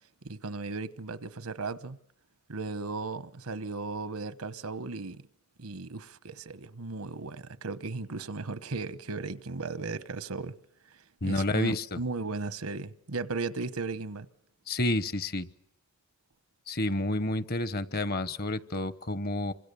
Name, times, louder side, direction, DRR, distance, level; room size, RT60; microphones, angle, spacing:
voice 1, 0.2-2.0 2.5-5.2 5.6-10.6 11.2-14.3, right 3 dB, 85° right, 1.1 m, -36 dB
voice 2, 11.2-12.0 14.7-15.5 16.7-19.5, left 2 dB, 45° left, 1.0 m, -29 dB
27.0 x 25.0 x 6.9 m
head